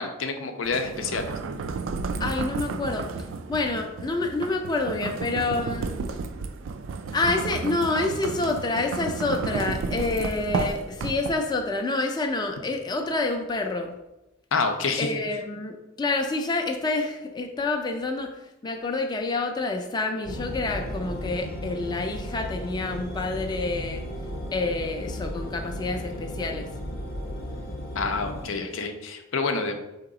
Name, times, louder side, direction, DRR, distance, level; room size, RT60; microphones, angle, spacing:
voice 1, 0.0-1.3 14.5-15.1 27.9-29.9, left 4 dB, 90° left, 5 dB, 0.5 m, -28 dB
sound 1, 0.6-11.6, right 4 dB, 75° right, 0.3 m, -32 dB
voice 2, 2.2-3.1 3.5-5.9 7.1-14.0 15.0-18.3 18.6-24.0 24.5-26.7, left 3 dB, 20° left, 3 dB, 0.4 m, -28 dB
sound 2, 20.2-28.5, equal, 50° left, 0.7 m, -35 dB
3.9 x 2.9 x 4.7 m, 0.97 s
head